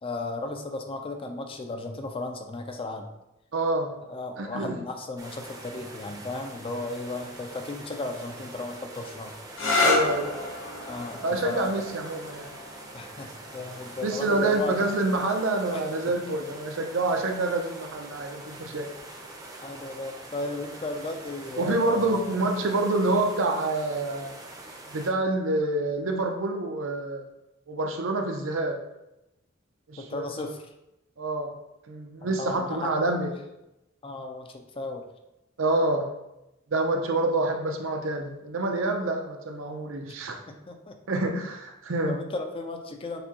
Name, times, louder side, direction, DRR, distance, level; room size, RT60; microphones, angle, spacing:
voice 1, 0.0-3.1 4.1-9.4 10.9-11.7 12.9-14.9 15.7-15.8 19.6-22.3 30.0-30.6 32.2-33.0 34.0-35.0 40.5-41.0 42.1-43.2, left 2 dB, 30° left, 4 dB, 0.4 m, -35 dB
voice 2, 3.5-3.9 4.4-4.8 9.8-10.3 11.2-12.5 14.0-18.9 21.6-24.3 24.9-27.3 27.7-28.8 29.9-30.3 31.2-31.5 31.9-33.3 35.6-36.1 36.7-40.4 41.1-42.2, right 2 dB, 80° right, 3 dB, 0.6 m, -27 dB
sound 1, 5.2-25.1, right 2 dB, 20° right, 0.6 m, -44 dB
sound 2, 9.5-16.9 17.9-18.5 22.0-22.3, left 2 dB, 85° left, 1.1 m, -32 dB
6.7 x 2.3 x 2.9 m, 0.91 s
head